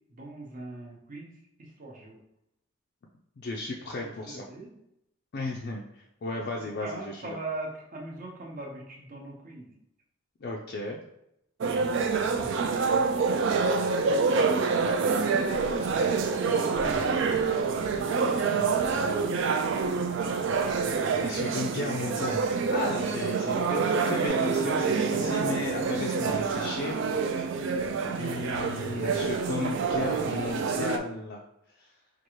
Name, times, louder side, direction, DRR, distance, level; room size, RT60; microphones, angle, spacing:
voice 1, 0.1-1.3 1.6-2.2 4.0-4.7 6.6-9.7 12.3-13.0 14.2-14.9 15.2-15.6 15.9-17.0 17.7-18.9, right 2 dB, 40° right, -1 dB, 0.8 m, -41 dB
voice 2, 3.4-4.5 5.3-7.4 10.4-11.0 21.2-22.4 22.7-27.0 28.2-31.4 31.8-31.9, left 2 dB, 50° left, -1 dB, 0.4 m, -34 dB
sound 1, 11.6-31.0, right 5 dB, 60° right, 0.3 m, -27 dB
Bass guitar, 24.3-30.5, left 2 dB, 15° right, 1.1 m, -41 dB
4.4 x 2.4 x 3.0 m, 0.83 s
head